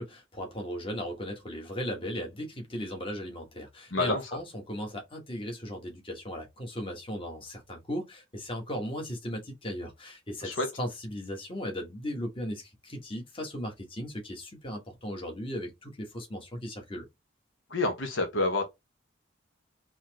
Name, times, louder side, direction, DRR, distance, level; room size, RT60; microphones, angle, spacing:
voice 1, 0.0-10.5 10.8-17.0, equal, 25° left, 1.3 m, -37 dB
voice 2, 3.9-4.4 10.4-10.7 17.7-18.6, left 2 dB, 80° left, 1.1 m, -28 dB
4.2 x 3.0 x 2.8 m
head